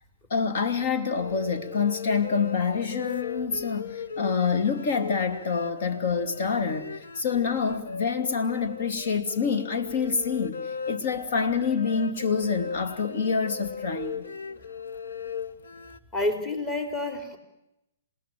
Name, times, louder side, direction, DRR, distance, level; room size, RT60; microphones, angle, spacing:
voice 1, 0.3-14.2, left 5 dB, 60° left, 8 dB, 2.7 m, -27 dB
sound 1, 1.1-16.0, left 5 dB, 75° left, 1.2 m, -38 dB
voice 2, 16.1-17.4, left 2 dB, 25° left, 6 dB, 4.3 m, -29 dB
27.5 x 18.5 x 7.8 m, 0.88 s
hypercardioid pair, 130°, 0 cm